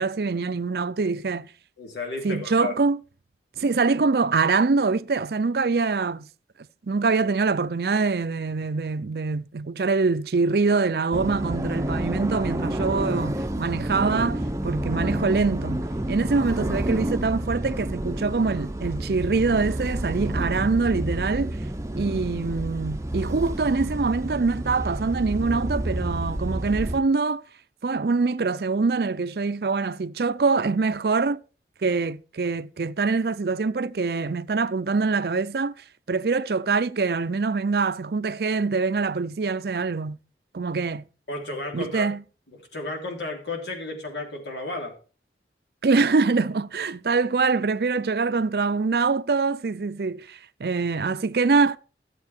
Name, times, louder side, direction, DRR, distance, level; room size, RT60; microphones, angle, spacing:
voice 1, 0.0-1.5 2.2-3.0 3.6-6.3 6.9-21.6 22.0-27.4 27.8-31.4 31.8-35.7 36.1-40.2 40.5-41.0 41.7-42.2 45.8-51.8, right 4 dB, 60° right, 0.5 m, -24 dB
voice 2, 1.8-2.7 41.3-42.1 42.5-44.9, left 2 dB, 80° left, 3.4 m, -33 dB
sound 1, 11.1-27.0, right 1 dB, 15° right, 0.6 m, -29 dB
12.5 x 8.3 x 4.4 m
head